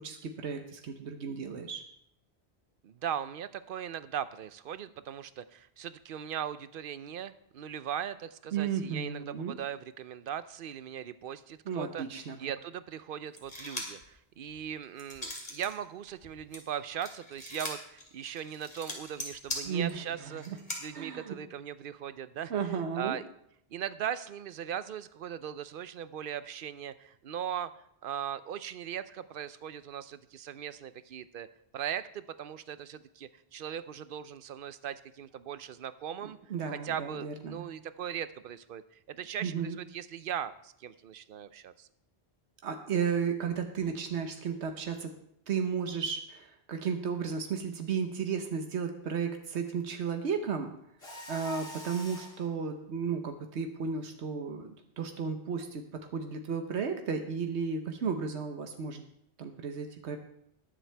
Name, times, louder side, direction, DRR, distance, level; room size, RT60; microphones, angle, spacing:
voice 1, 0.0-1.8 8.5-9.6 11.7-12.4 19.6-20.6 20.9-21.3 22.5-23.2 36.2-37.7 39.4-39.8 42.6-45.1 45.5-50.7 51.3-59.0 59.4-60.2, right 6 dB, 90° right, 5 dB, 1.2 m, -34 dB
voice 2, 2.8-12.0 12.4-20.4 20.7-22.5 23.0-23.2 23.7-27.7 28.0-31.5 31.7-36.4 36.7-38.8 39.1-41.9, right 9 dB, 60° right, 14 dB, 0.7 m, -39 dB
sound 1, 13.4-14.1 14.5-15.7 16.1-20.8, left 1 dB, 45° left, 2.6 m, -40 dB
Mechanisms, 51.0-52.5, left 2 dB, 65° left, 2.3 m, -44 dB
20.0 x 7.5 x 3.4 m, 0.73 s
omnidirectional pair, 1.1 m